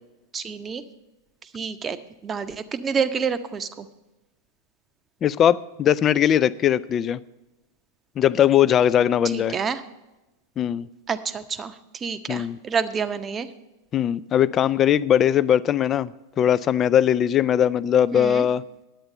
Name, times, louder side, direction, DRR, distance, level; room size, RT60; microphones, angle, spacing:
voice 1, 0.3-0.8 1.4-2.0 2.2-3.9 9.3-9.8 11.1-13.5 18.1-18.5, right 6 dB, 20° right, 11 dB, 0.7 m, -28 dB
voice 2, 5.2-7.2 8.2-9.5 10.6-10.9 12.3-12.6 13.9-16.1 16.4-18.6, left 10 dB, 30° left, 18 dB, 0.4 m, -20 dB
10.0 x 8.7 x 6.5 m, 1.0 s
figure-of-eight pair, 90°, 0 cm